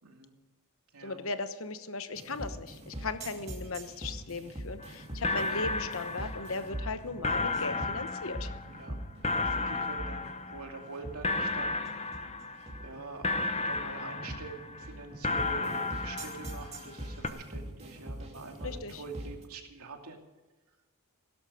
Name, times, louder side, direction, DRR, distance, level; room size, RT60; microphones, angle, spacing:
voice 1, 0.0-0.3 0.9-1.2 8.7-11.9 12.8-20.2, right 4 dB, 80° right, 3 dB, 2.6 m, -45 dB
voice 2, 1.0-8.6 18.6-19.0, left 3 dB, 65° left, 10 dB, 1.1 m, -37 dB
sound 1, 2.2-19.4, right 1 dB, 30° right, 2.7 m, -42 dB
sound 2, 4.8-4.9 5.2-6.9 7.2-11.0 11.2-12.9 13.2-14.9 15.2-17.0 17.2-17.3, left 3 dB, 30° left, 0.9 m, -33 dB
17.0 x 12.5 x 5.0 m, 1.2 s
head